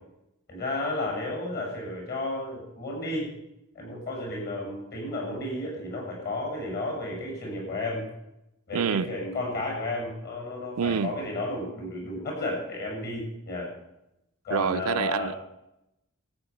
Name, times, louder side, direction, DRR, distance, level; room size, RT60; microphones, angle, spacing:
voice 1, 0.5-3.3 3.8-8.0 8.7-13.7 14.4-15.3, left 2 dB, 50° left, 7.2 m, -32 dB
voice 2, 8.7-9.1 10.8-11.2 14.5-15.3, right 7 dB, 80° right, 0.4 m, -27 dB
13.5 x 9.3 x 7.1 m
head